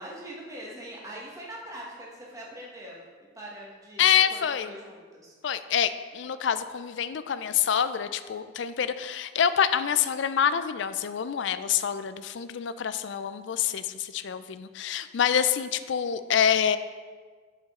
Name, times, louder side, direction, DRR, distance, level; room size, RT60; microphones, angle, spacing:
voice 1, 0.0-3.1 3.3-5.3, right 1 dB, 15° right, -3 dB, 1.3 m, -42 dB
voice 2, 4.0-4.7 5.4-16.8, left 8 dB, 60° left, 12 dB, 0.4 m, -26 dB
11.0 x 5.1 x 3.7 m, 1.5 s
head